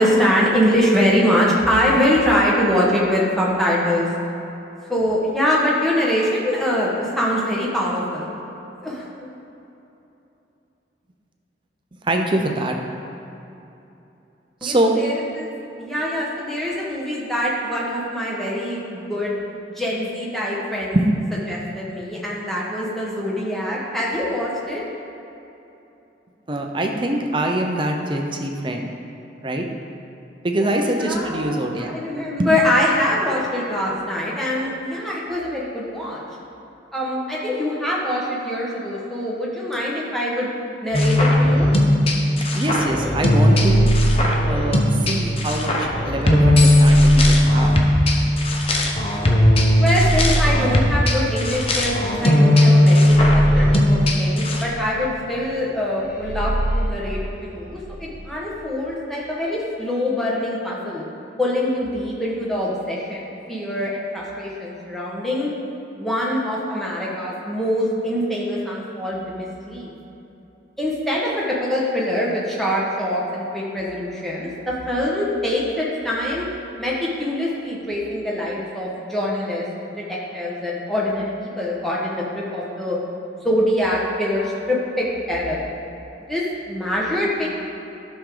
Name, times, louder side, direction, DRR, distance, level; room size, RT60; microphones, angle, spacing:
voice 1, 0.0-4.1 4.9-8.3 8.8-9.0 14.6-15.5 15.8-19.4 19.7-21.0 21.5-24.8 30.6-36.2 36.9-40.5 40.8-41.7 49.8-61.1 61.4-65.5 65.9-69.9 70.8-76.5 76.8-76.9 77.2-79.7 80.0-83.0 83.4-85.7 86.3-87.5, left 1 dB, ahead, -6 dB, 1.4 m, -23 dB
voice 2, 12.0-12.8 14.6-15.0 20.9-21.1 26.5-28.9 29.4-29.6 30.4-32.0 32.4-32.5 42.4-43.9 44.4-47.7, right 1 dB, 25° right, 2 dB, 0.6 m, -24 dB
sound 1, 40.9-54.6, left 1 dB, 30° left, 0.8 m, -17 dB
sound 2, 43.4-45.5 46.5-48.7 49.7-52.1 52.9-55.0 56.0-58.2, right 1 dB, 50° left, 1.0 m, -26 dB
12.0 x 6.2 x 3.8 m, 2.9 s
head